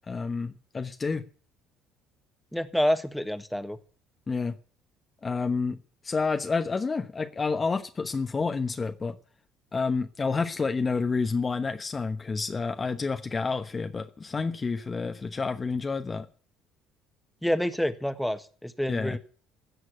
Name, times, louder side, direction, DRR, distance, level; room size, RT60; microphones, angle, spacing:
voice 1, 0.1-1.2 4.3-4.5 5.2-5.8 6.0-9.2 9.7-16.3 18.9-19.2, left 4 dB, 30° left, 1.1 m, -29 dB
voice 2, 2.5-3.8 17.4-19.2, equal, ahead, 1.6 m, -28 dB
16.0 x 6.5 x 9.4 m
hypercardioid pair, 60°, 0 cm